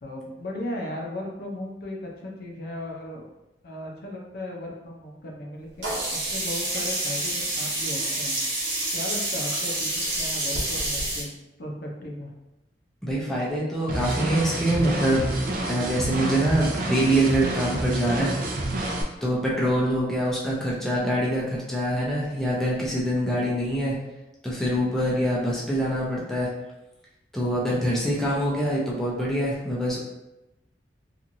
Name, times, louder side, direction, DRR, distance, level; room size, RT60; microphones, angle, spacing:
voice 1, 0.0-3.3 3.6-8.4 8.9-11.3 11.6-12.3, left 1 dB, 60° left, -1 dB, 0.6 m, -36 dB
Sink (filling or washing), 5.8-11.2, right 1 dB, 90° right, 1.0 m, -28 dB
voice 2, 13.0-15.4 15.7-18.3 19.2-23.9 24.4-26.5 27.3-30.0, right 1 dB, ahead, -6 dB, 0.5 m, -25 dB
sound 1, 13.9-19.0, right 2 dB, 50° right, 0.4 m, -28 dB
2.9 x 2.4 x 2.6 m, 0.97 s
head